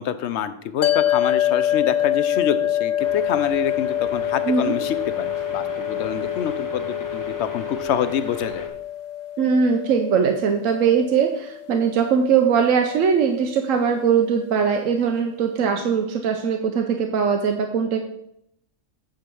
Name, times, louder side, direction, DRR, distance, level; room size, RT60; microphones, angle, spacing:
voice 1, 0.0-8.6, left 8 dB, 65° left, 12 dB, 0.9 m, -26 dB
sound 1, 0.8-13.3, left 11 dB, 80° left, 0.3 m, -26 dB
sound 2, 3.0-8.7, left 5 dB, 15° left, 1.0 m, -34 dB
voice 2, 4.4-4.8 9.4-18.0, right 6 dB, 85° right, 4 dB, 1.1 m, -21 dB
9.0 x 3.8 x 6.9 m, 0.73 s
omnidirectional pair, 1.3 m